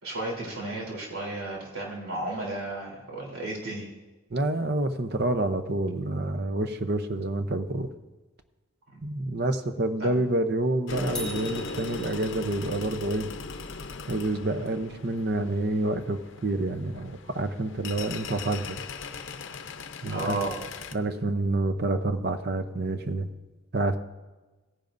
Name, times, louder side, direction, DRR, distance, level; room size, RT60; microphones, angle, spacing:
voice 1, 0.0-3.9 8.9-9.0 10.0-10.2 20.1-20.5, right 2 dB, 85° right, -3 dB, 3.6 m, -33 dB
voice 2, 4.3-7.9 9.0-13.4 14.1-18.8 20.0-20.5 20.9-23.3 23.7-24.0, right 2 dB, 50° right, 9 dB, 0.7 m, -28 dB
sound 1, 10.9-20.9, left 4 dB, 60° left, 0.6 m, -39 dB
sound 2, 11.1-12.7, left 1 dB, 5° left, 1.5 m, -41 dB
17.5 x 10.5 x 2.6 m, 1.2 s
head